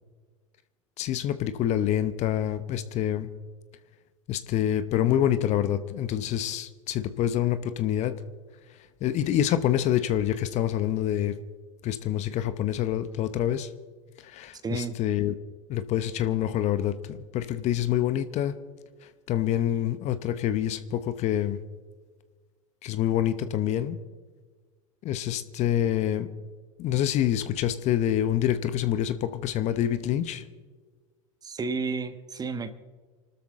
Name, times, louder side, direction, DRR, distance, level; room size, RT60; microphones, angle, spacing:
voice 1, 1.0-3.3 4.3-8.1 9.0-11.4 11.8-13.7 14.2-15.3 15.7-18.5 19.3-21.6 22.8-24.0 25.0-26.3 26.8-30.4, left 11 dB, 45° left, 12 dB, 1.0 m, -26 dB
voice 2, 14.6-15.0 31.4-32.7, right 4 dB, 25° right, 11 dB, 1.4 m, -31 dB
28.5 x 13.0 x 3.8 m, 1.4 s
figure-of-eight pair, 80°, 17 cm